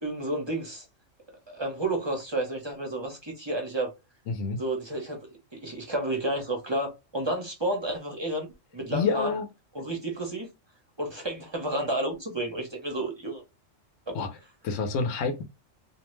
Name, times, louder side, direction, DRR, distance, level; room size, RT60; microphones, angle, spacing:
voice 1, 0.0-0.9 1.5-3.9 4.6-8.5 8.7-9.3 9.7-10.5 11.0-13.4, right 1 dB, 30° right, 0.5 m, -31 dB
voice 2, 4.3-4.6 8.9-9.5 14.1-14.3 14.6-15.4, left 4 dB, 70° left, 1.0 m, -28 dB
2.6 x 2.1 x 3.1 m
omnidirectional pair, 1.4 m